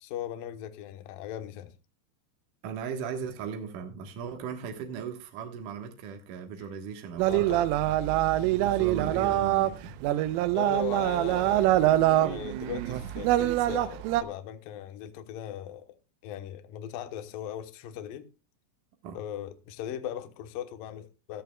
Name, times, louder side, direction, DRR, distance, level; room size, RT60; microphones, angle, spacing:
voice 1, 0.0-1.7 7.3-7.7 10.5-11.8 12.1-16.0 16.2-18.3 19.1-21.4, left 10 dB, 80° left, 2.0 m, -38 dB
voice 2, 2.6-7.6 8.6-10.2 19.0-19.2, right 7 dB, 65° right, 2.0 m, -37 dB
sound 1, 7.2-14.2, right 14 dB, 90° right, 3.4 m, -25 dB
16.5 x 13.5 x 2.3 m
omnidirectional pair, 5.6 m